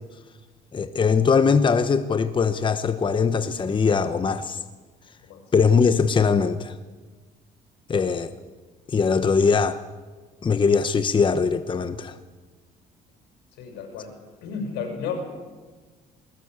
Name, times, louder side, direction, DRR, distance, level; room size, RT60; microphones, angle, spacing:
voice 1, 0.7-4.6 5.5-6.7 7.9-8.3 8.9-9.8 10.4-12.1, left 5 dB, 30° left, 1.1 m, -21 dB
voice 2, 13.6-14.1 14.4-15.2, left 6 dB, 85° left, 6.8 m, -33 dB
20.5 x 20.5 x 8.2 m
cardioid pair, 110°, 17 cm